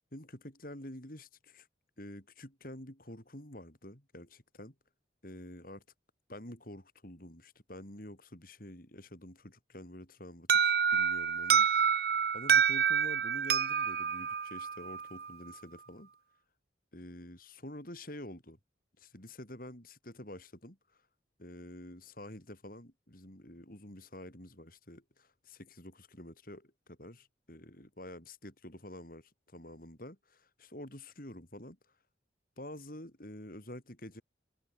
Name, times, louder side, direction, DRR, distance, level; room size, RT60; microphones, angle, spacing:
voice 1, 0.1-1.7 2.0-4.8 5.2-5.8 6.3-11.9 12.3-16.1 16.9-18.6 19.0-21.0 21.4-31.8 32.6-34.2, left 1 dB, 50° left, 5.1 m, -48 dB
Alarm, 10.5-15.3, right 7 dB, 55° right, 0.8 m, -28 dB
head